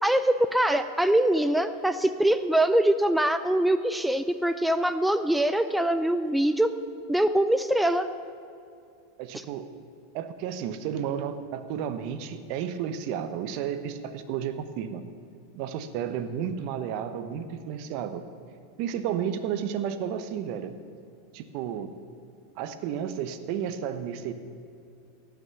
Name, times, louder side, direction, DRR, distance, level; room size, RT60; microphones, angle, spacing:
voice 1, 0.0-6.7 7.1-8.1, right 1 dB, 5° right, 11 dB, 0.4 m, -23 dB
voice 2, 9.2-9.7 10.1-15.1 15.5-18.2 18.8-20.7 21.3-21.9 22.6-24.3, right 8 dB, 55° right, 10 dB, 0.9 m, -32 dB
17.5 x 6.0 x 7.0 m, 2.5 s
hypercardioid pair, 100°, 0 cm